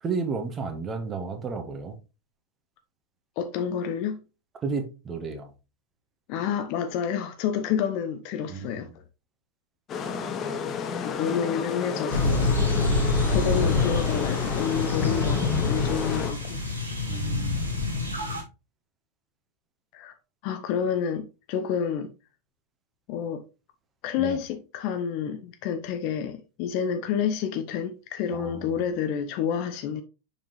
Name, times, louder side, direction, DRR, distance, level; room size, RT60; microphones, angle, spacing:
voice 1, 0.0-2.0 4.6-5.5 8.5-9.0 17.0-17.7 24.2-24.4 28.3-28.9, right 4 dB, 25° right, 1.5 m, -32 dB
voice 2, 3.4-4.2 6.3-8.9 11.0-12.8 13.3-16.6 19.9-20.1 20.4-22.1 23.1-23.4 24.0-30.0, left 8 dB, 45° left, 0.7 m, -29 dB
sound 1, 9.9-16.3, left 6 dB, 30° left, 1.1 m, -31 dB
sound 2, 12.1-18.4, left 3 dB, 80° right, 2.9 m, -26 dB
6.9 x 5.8 x 3.1 m
figure-of-eight pair, 90°, 0 cm